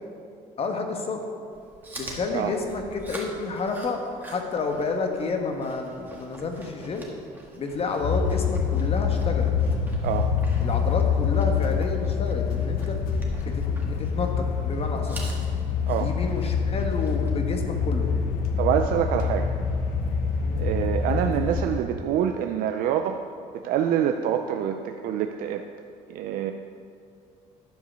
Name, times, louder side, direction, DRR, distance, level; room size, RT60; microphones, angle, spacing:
voice 1, 0.6-1.2 1.9-7.0 7.5-9.5 10.6-13.0 13.4-15.4 16.0-18.1 20.4-20.6, left 3 dB, 40° left, 4 dB, 1.3 m, -30 dB
Chewing mastication, 1.5-17.4, right 1 dB, 15° right, 1.8 m, -46 dB
sound 1, 8.0-21.8, left 6 dB, 80° left, 1.0 m, -26 dB
voice 2, 18.6-19.6 20.6-23.2 23.5-25.6 26.1-26.5, right 9 dB, 70° right, 6 dB, 0.5 m, -26 dB
10.5 x 4.9 x 6.8 m, 2.4 s
cardioid pair, 105°, 15 cm